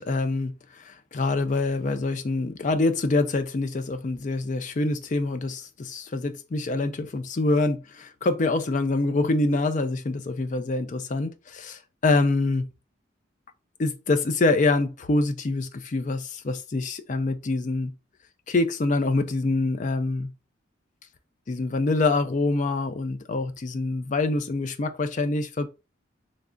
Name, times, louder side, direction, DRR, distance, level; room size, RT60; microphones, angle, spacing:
voice 1, 0.0-12.7 13.8-17.9 18.5-20.3 21.5-25.7, left 2 dB, 40° left, 0.4 m, -25 dB
3.2 x 2.4 x 3.7 m
head